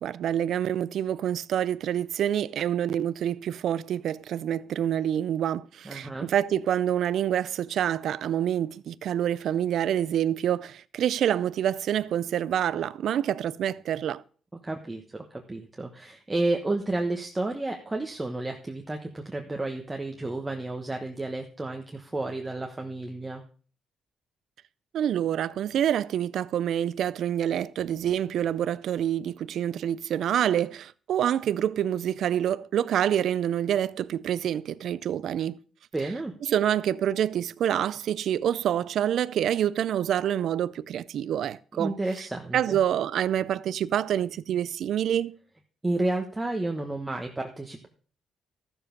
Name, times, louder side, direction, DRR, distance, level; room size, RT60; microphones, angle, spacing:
voice 1, 0.0-14.2 24.9-35.6 36.5-41.9 42.5-45.3, right 10 dB, 70° right, 0.4 m, -27 dB
voice 2, 5.8-6.3 14.6-23.4 35.9-36.3 41.7-42.8 45.8-47.9, right 2 dB, 15° right, 1.2 m, -31 dB
13.5 x 7.1 x 5.2 m
cardioid pair, 90°, 0 cm